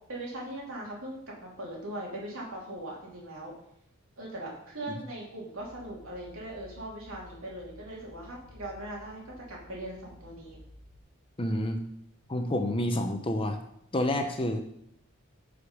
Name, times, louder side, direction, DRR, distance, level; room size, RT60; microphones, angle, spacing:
voice 1, 0.1-3.5 4.2-10.6, right 1 dB, 65° right, -3 dB, 3.0 m, -40 dB
sound 1, 5.6-11.0, left 1 dB, 85° right, 2.1 m, -53 dB
voice 2, 11.4-11.8 12.3-13.6 13.9-14.6, left 1 dB, 25° left, 6 dB, 0.7 m, -28 dB
9.5 x 5.1 x 5.2 m, 0.73 s
head